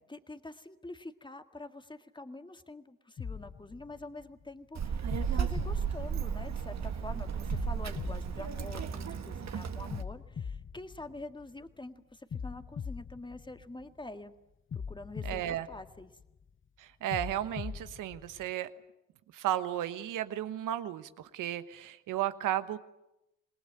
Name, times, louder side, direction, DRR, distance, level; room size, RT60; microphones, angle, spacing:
voice 1, 0.1-14.3 14.7-16.1, left 2 dB, 15° left, 8 dB, 1.9 m, -46 dB
sound 1, 3.2-4.5 5.1-6.8 7.5-9.3 9.9-11.7 12.3-14.1 14.7-16.4 17.1-18.5, left 6 dB, 40° left, 0.9 m, -42 dB
Child speech kid speaking, 4.7-10.0, right 7 dB, 60° right, 1.7 m, -34 dB
voice 2, 15.2-15.7 16.8-18.7 19.3-22.8, right 12 dB, 80° right, 12 dB, 1.2 m, -34 dB
27.0 x 19.5 x 8.8 m, 0.91 s
supercardioid pair, 50°, 31 cm